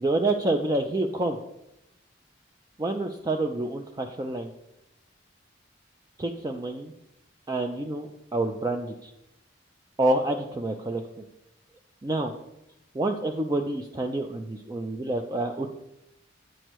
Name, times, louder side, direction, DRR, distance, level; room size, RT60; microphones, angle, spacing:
voice 1, 0.0-1.4 2.8-4.5 6.2-6.9 7.5-9.1 10.0-11.0 12.0-12.3 12.9-15.7, right 2 dB, 20° right, 4 dB, 0.4 m, -28 dB
8.8 x 6.3 x 3.0 m, 0.87 s
head